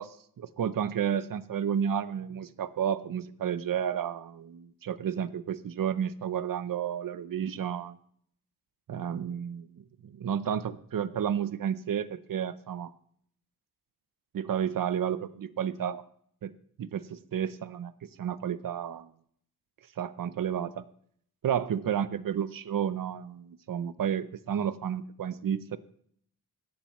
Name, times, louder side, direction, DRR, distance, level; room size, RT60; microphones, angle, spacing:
voice 1, 0.0-8.0 8.9-12.9 14.3-16.0 16.4-16.5 16.8-17.0 17.3-17.9 18.2-19.1 20.0-20.8 21.4-25.8, right 8 dB, 60° right, 15 dB, 0.6 m, -31 dB
16.5 x 11.5 x 3.0 m, 0.64 s
wide cardioid pair, 180°, 38 cm